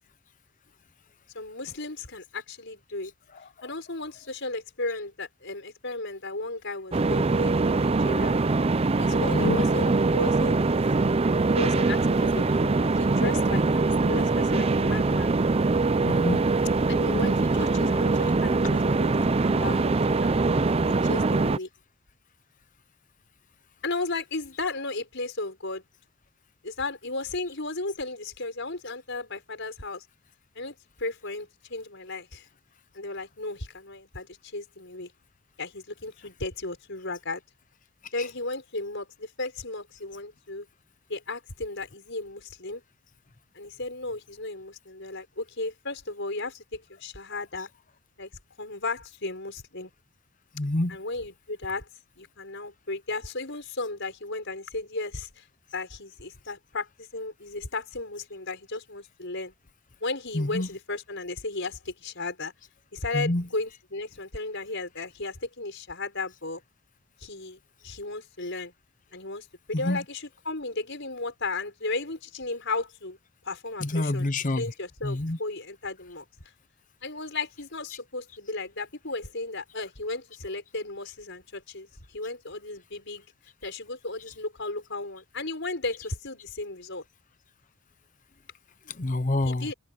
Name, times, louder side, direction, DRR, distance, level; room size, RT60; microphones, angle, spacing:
voice 1, 1.3-3.1 3.6-8.4 9.0-10.7 11.5-15.3 16.9-20.3 21.0-21.7 23.8-25.8 26.6-30.0 30.5-32.5 32.9-35.1 35.6-37.4 38.1-40.7 41.1-42.8 43.5-47.7 48.2-48.3 48.6-49.9 50.9-51.9 52.2-55.4 55.7-59.5 60.0-62.5 62.9-66.6 67.2-68.7 69.1-73.2 73.4-74.3 74.5-76.2 77.0-83.2 83.6-87.0 89.4-89.7, left 3 dB, 55° left, 6.5 m, -35 dB
voice 2, 3.3-3.7 9.3-9.6 16.0-16.5 38.2-38.3 50.5-51.0 60.3-60.7 63.1-63.5 69.7-70.1 73.8-74.7 75.0-75.4 88.9-89.7, left 1 dB, 35° left, 0.8 m, -28 dB
sound 1, 6.9-21.6, right 3 dB, 25° right, 0.5 m, -23 dB
head